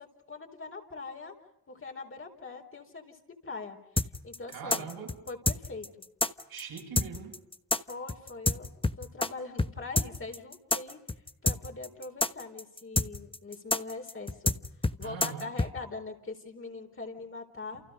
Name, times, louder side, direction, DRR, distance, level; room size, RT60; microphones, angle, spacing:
voice 1, 0.0-1.3 1.7-4.8 5.3-6.1 7.8-8.7 9.0-11.0 11.4-14.6 15.0-17.8, left 3 dB, 35° left, 4.3 m, -42 dB
sound 1, 4.0-9.3 9.6-9.7 10.0-15.7, left 2 dB, 15° left, 1.2 m, -28 dB
voice 2, 4.5-5.2 6.5-7.4 15.0-15.5 17.7-17.8, right 7 dB, 75° right, 7.4 m, -41 dB
29.0 x 28.5 x 5.3 m
cardioid pair, 90°, 36 cm